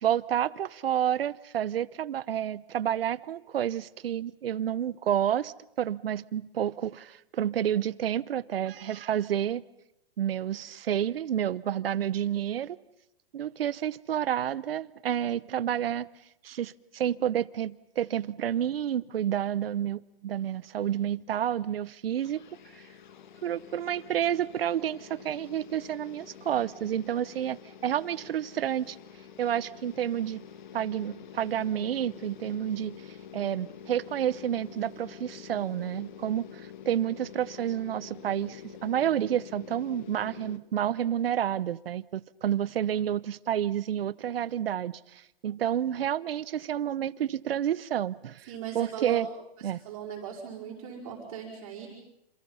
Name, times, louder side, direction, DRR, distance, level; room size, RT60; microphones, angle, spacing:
voice 1, 0.0-9.6 10.2-12.8 13.3-16.1 16.4-22.4 23.4-29.0 29.4-30.4 30.7-33.0 33.3-36.4 36.9-48.5 48.7-49.3 49.6-49.8, right 10 dB, 75° right, 0.9 m, -29 dB
sound 1, 22.2-40.6, left 8 dB, 50° left, 1.6 m, -47 dB
voice 2, 48.5-49.3 49.6-51.9, right 8 dB, 30° right, 5.2 m, -38 dB
28.0 x 27.5 x 5.6 m
hypercardioid pair, 180°, 30 cm